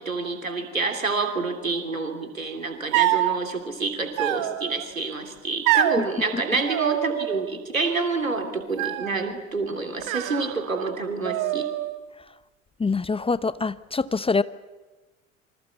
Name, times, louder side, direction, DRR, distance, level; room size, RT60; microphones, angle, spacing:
voice 1, 0.0-11.7, right 3 dB, 90° right, 6 dB, 3.1 m, -28 dB
sound 1, 2.9-3.4 4.2-4.8 5.7-6.0 6.7-7.5 7.8-8.3 8.8-9.3 10.0-10.9 11.2-12.0, right 15 dB, 55° right, 2.1 m, -26 dB
voice 2, 12.8-14.4, left 4 dB, 15° left, 16 dB, 0.9 m, -24 dB
26.5 x 25.0 x 8.3 m, 1.2 s
figure-of-eight pair, 65°, 39 cm